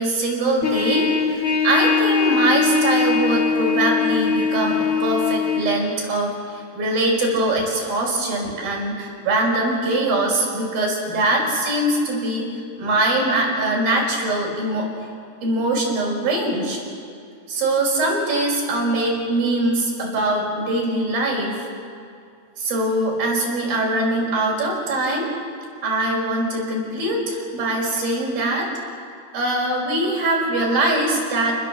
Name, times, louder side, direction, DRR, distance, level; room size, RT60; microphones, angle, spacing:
voice 1, 0.0-12.5 12.8-14.9 15.4-16.8 17.5-21.7 22.6-25.3 25.8-28.7 29.3-31.7, right 1 dB, 65° right, -2 dB, 7.3 m, -22 dB
Trumpet, 0.6-5.6, left 5 dB, 55° left, 0.9 m, -21 dB
28.5 x 20.5 x 7.7 m, 2.3 s
omnidirectional pair, 4.5 m